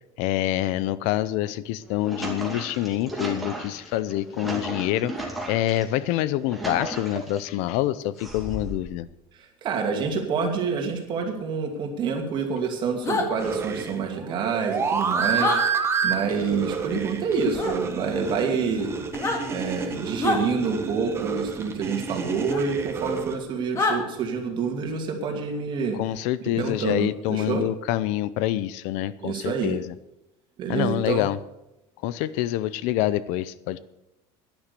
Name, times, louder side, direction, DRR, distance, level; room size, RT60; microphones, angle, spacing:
voice 1, 0.2-9.1 26.0-29.8 30.7-31.4 32.0-33.8, left 14 dB, 65° left, 17 dB, 0.6 m, -26 dB
sound 1, 1.7-5.8 6.3-7.5 8.2-8.9, right 1 dB, ahead, 2.5 m, -35 dB
voice 2, 9.3-18.9 19.5-26.0 26.6-27.6 29.2-29.8 30.6-31.3, right 5 dB, 35° right, 3 dB, 2.5 m, -27 dB
sound 2, 13.0-13.3 15.4-15.6 17.5-17.7 19.1-19.4 20.2-20.4 22.5-22.6 23.7-24.0, left 3 dB, 20° left, 2.0 m, -25 dB
sound 3, 13.4-23.4, right 5 dB, 20° right, 1.3 m, -29 dB
11.5 x 10.5 x 6.8 m, 0.90 s
cardioid pair, 160°, 13 cm